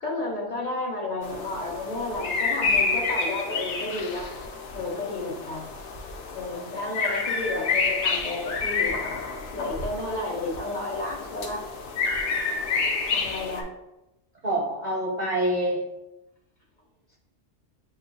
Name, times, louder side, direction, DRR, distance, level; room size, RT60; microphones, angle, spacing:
voice 1, 0.0-4.3 4.7-5.7 6.3-9.1 9.5-11.6 13.1-13.6, left 2 dB, 45° left, -2 dB, 0.9 m, -32 dB
sound 1, 1.2-13.6, left 4 dB, 75° left, 0.9 m, -29 dB
voice 2, 14.4-15.8, right 1 dB, 45° right, -2 dB, 0.7 m, -26 dB
7.7 x 2.7 x 2.2 m, 0.96 s
omnidirectional pair, 1.2 m